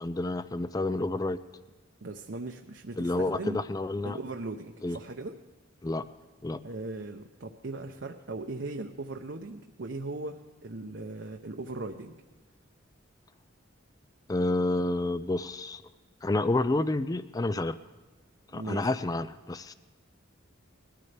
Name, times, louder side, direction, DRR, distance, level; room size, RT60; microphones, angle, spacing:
voice 1, 0.0-1.4 3.0-4.2 4.8-5.0 5.8-6.0 6.4-6.6 14.3-15.8 16.2-17.8 18.5-19.7, left 2 dB, 20° left, 14 dB, 0.3 m, -29 dB
voice 2, 2.0-3.6 4.0-5.3 6.6-12.2 18.5-18.9, right 2 dB, 65° right, 3 dB, 0.7 m, -38 dB
21.0 x 14.0 x 3.4 m, 1.3 s
head